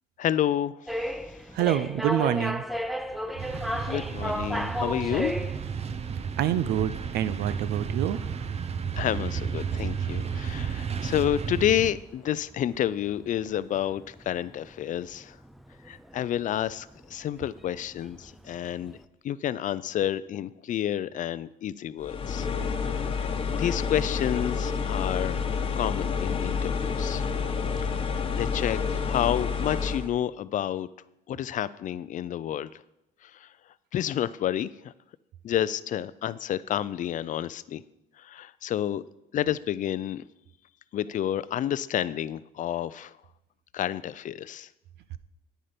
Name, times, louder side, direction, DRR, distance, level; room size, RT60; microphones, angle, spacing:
voice 1, 0.2-1.1 3.9-5.3 8.9-15.4 15.8-19.0 19.2-22.5 22.9-25.4 25.7-27.3 28.3-30.9 31.3-32.8 33.2-33.5 33.9-34.9 35.4-37.8 38.2-39.0 39.3-40.2 40.9-43.2 43.7-44.7, left 11 dB, 50° left, 17 dB, 0.5 m, -30 dB
sound 1, 0.9-19.0, equal, ahead, 0.6 m, -36 dB
voice 2, 1.5-2.6 6.4-8.2, right 11 dB, 75° right, 14 dB, 0.7 m, -26 dB
sound 2, 3.4-11.9, right 6 dB, 40° right, 0.8 m, -32 dB
sound 3, 22.0-30.1, left 5 dB, 30° left, 1.1 m, -29 dB
9.9 x 9.3 x 5.2 m, 0.85 s
cardioid pair, 110°, 17 cm